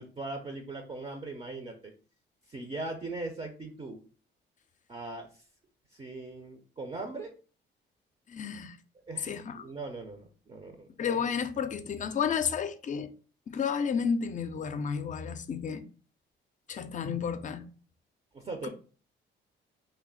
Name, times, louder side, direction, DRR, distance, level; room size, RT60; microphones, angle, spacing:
voice 1, 0.0-1.9 2.5-4.0 4.9-5.4 5.9-7.3 9.1-10.9 18.3-18.7, right 3 dB, 30° right, 0.5 m, -40 dB
voice 2, 8.3-8.8 9.2-9.6 11.0-13.1 13.5-15.8 16.7-17.6 18.6-18.7, left 6 dB, 40° left, 0.4 m, -31 dB
3.2 x 2.0 x 3.7 m
cardioid pair, 90°, 20 cm